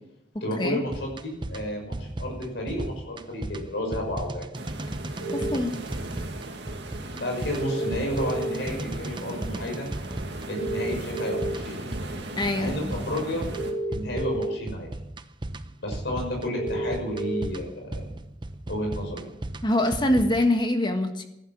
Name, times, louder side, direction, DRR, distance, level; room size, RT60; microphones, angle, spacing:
voice 1, 0.4-4.5 7.1-9.9 10.5-11.8 12.5-13.4 13.9-14.9 15.8-18.0 18.7-19.3, equal, 65° left, 1 dB, 6.3 m, -31 dB
sound 1, 0.9-20.5, right 1 dB, 25° right, 0.7 m, -36 dB
sound 2, 4.5-13.7, right 2 dB, 65° right, 2.3 m, -38 dB
sound 3, 5.2-5.5 7.5-8.5 10.5-11.5 13.5-14.5 16.5-17.4, right 1 dB, 85° left, 7.0 m, -30 dB
voice 2, 5.3-5.8 12.4-12.9 19.6-21.3, left 1 dB, 25° left, 6 dB, 1.5 m, -24 dB
15.5 x 12.0 x 7.5 m, 0.84 s
head